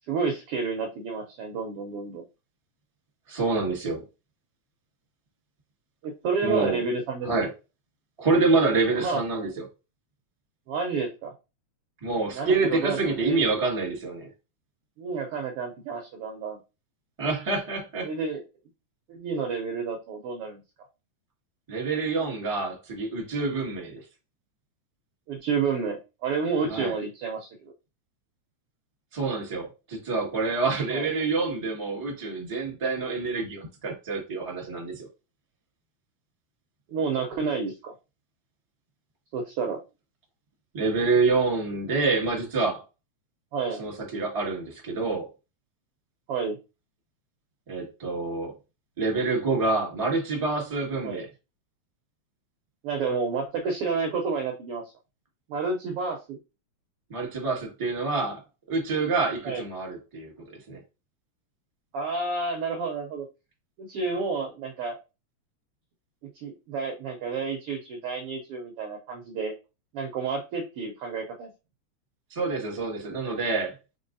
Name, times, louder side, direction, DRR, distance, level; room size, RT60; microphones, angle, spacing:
voice 1, 0.1-2.2 6.0-7.3 9.0-9.4 10.7-11.3 12.3-13.4 15.0-16.6 18.0-18.4 19.1-20.6 25.3-27.7 30.9-31.1 36.9-37.9 39.3-39.8 43.5-43.8 46.3-46.6 51.0-51.2 52.8-54.8 55.5-56.4 59.4-59.6 61.9-63.3 63.8-65.0 66.3-69.5 69.9-71.5, right 4 dB, 80° right, 1.3 m, -30 dB
voice 2, 3.3-4.0 6.4-6.8 7.2-7.5 8.2-9.5 12.0-14.3 17.2-18.1 21.7-24.0 26.7-26.9 29.1-35.0 40.7-42.8 43.8-45.3 47.7-48.5 49.0-51.3 57.1-58.4 58.7-60.8 72.3-73.7, right 3 dB, 20° right, 1.0 m, -27 dB
4.6 x 4.0 x 2.6 m
omnidirectional pair, 3.4 m